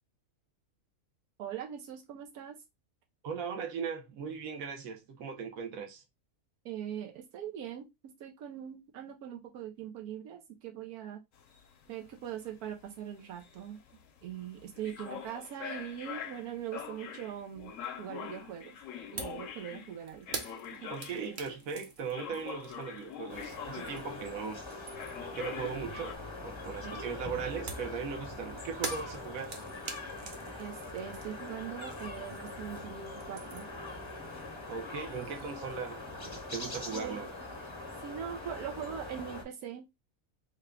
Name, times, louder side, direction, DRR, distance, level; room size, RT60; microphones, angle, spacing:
voice 1, 1.4-2.6 6.6-7.9 8.2-11.2 11.9-13.8 14.2-18.7 19.1-20.3 20.7-20.9 26.8-27.1 30.6-33.7 36.9-37.5 38.0-39.8, right 9 dB, 90° right, 1.2 m, -41 dB
voice 2, 3.2-6.0 20.9-24.6 25.3-26.2 26.4-29.6 34.7-37.3, right 6 dB, 70° right, 1.2 m, -38 dB
sound 1, 11.4-21.6 22.1-24.6 24.9-26.2, left 7 dB, 65° left, 1.0 m, -44 dB
sound 2, 19.2-19.5 19.7-24.2 24.6-25.3 27.7-32.8 33.0-33.8, right 4 dB, 50° right, 0.6 m, -44 dB
sound 3, 23.3-39.4, left 2 dB, 25° left, 0.7 m, -43 dB
3.6 x 2.2 x 3.4 m
omnidirectional pair, 1.5 m